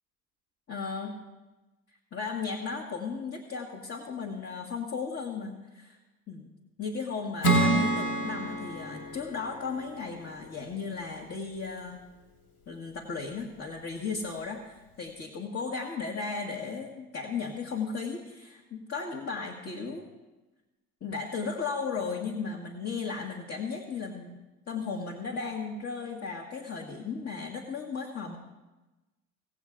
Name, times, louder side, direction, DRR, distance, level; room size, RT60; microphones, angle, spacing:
voice 1, 0.7-1.1 2.1-6.0 6.3-6.5 6.8-12.0 12.7-20.0 21.0-24.4 24.7-28.4, left 5 dB, 35° left, -2 dB, 1.7 m, -35 dB
Acoustic guitar / Strum, 7.4-10.9, right 2 dB, 55° left, 2.9 m, -28 dB
17.0 x 8.3 x 3.7 m, 1.1 s
figure-of-eight pair, 50°, 44 cm